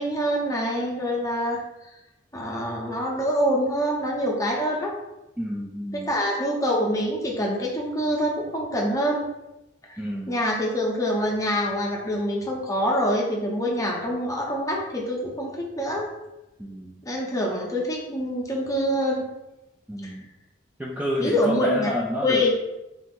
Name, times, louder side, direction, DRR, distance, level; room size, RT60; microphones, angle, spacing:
voice 1, 0.0-1.9 2.3-4.9 6.1-9.3 9.9-10.0 10.3-16.1 17.0-19.2 20.0-20.1 21.2-21.9 22.2-22.5, equal, 20° left, -2 dB, 0.8 m, -25 dB
voice 2, 5.4-6.1 10.0-10.4 16.6-17.0 19.9-20.2 20.8-22.5, left 1 dB, 10° right, -5 dB, 0.4 m, -29 dB
3.5 x 2.8 x 4.3 m, 0.95 s
head